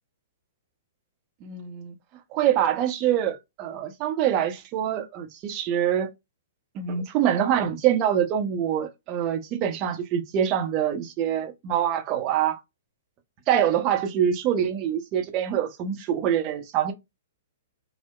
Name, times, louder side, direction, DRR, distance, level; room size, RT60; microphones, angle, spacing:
voice 1, 1.4-1.9 2.3-6.1 6.7-12.6 13.5-16.9, right 10 dB, 35° right, 0.6 m, -25 dB
2.8 x 2.0 x 2.2 m
figure-of-eight pair, 115°, 0 cm